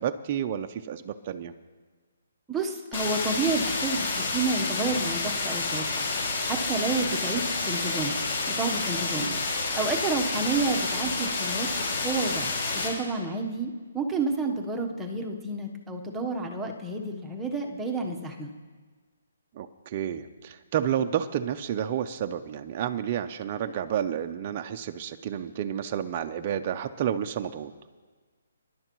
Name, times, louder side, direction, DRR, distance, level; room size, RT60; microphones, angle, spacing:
voice 1, 0.0-1.5 9.2-9.4 19.6-27.7, right 9 dB, 30° right, 6 dB, 0.5 m, -30 dB
voice 2, 2.5-6.1 6.4-8.2 8.6-9.3 9.7-11.7 12.0-18.5, right 3 dB, 5° right, 0 dB, 1.0 m, -30 dB
sound 1, 2.9-12.9, left 3 dB, 40° left, 5.4 m, -29 dB
27.5 x 11.0 x 3.1 m, 1.4 s
hypercardioid pair, 170°, 0 cm